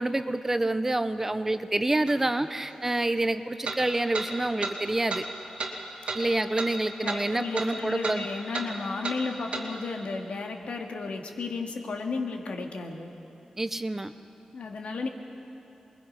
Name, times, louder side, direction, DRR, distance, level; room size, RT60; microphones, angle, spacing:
voice 1, 0.0-5.3 6.1-8.3 13.6-14.1, right 2 dB, 15° right, 10 dB, 0.6 m, -27 dB
sound 1, 2.1-2.2 3.6-3.8 4.1-4.3 4.6-4.7 5.1-5.2 5.6-5.7 6.1-6.2 6.6-6.7 7.1-7.2 7.5-7.7 8.0-8.2 8.5-8.7 9.0-9.2 9.5-9.7, right 4 dB, 65° right, 2.7 m, -32 dB
voice 2, 7.0-13.1 14.5-15.1, left 4 dB, 80° left, 2 dB, 2.0 m, -33 dB
27.5 x 21.5 x 5.5 m, 2.9 s
wide cardioid pair, 155°, 2 cm